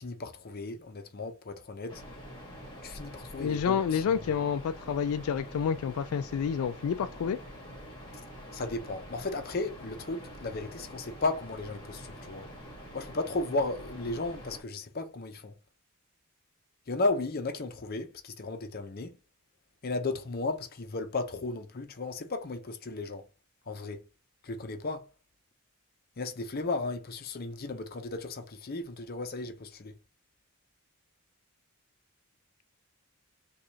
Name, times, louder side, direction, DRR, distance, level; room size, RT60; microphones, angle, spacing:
voice 1, 0.0-2.0 2.8-4.2 8.5-12.5 12.9-15.5 16.9-19.2 19.8-23.2 23.7-24.0 24.4-25.1 26.2-29.9, left 3 dB, 45° left, 0.6 m, -34 dB
sound 1, 1.9-14.6, equal, 20° left, 1.3 m, -46 dB
voice 2, 3.4-7.4, left 7 dB, 80° left, 0.3 m, -29 dB
4.8 x 2.3 x 2.8 m
head